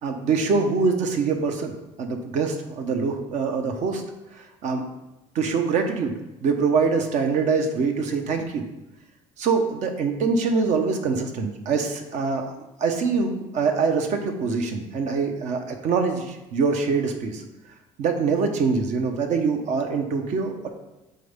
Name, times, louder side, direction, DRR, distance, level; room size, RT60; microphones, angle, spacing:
voice 1, 0.0-1.7 2.0-4.0 4.3-4.9 5.3-8.6 9.4-12.5 12.8-17.4 18.0-20.7, right 4 dB, 60° right, 4 dB, 1.0 m, -24 dB
7.5 x 4.4 x 3.7 m, 0.98 s
cardioid pair, 115°, 14 cm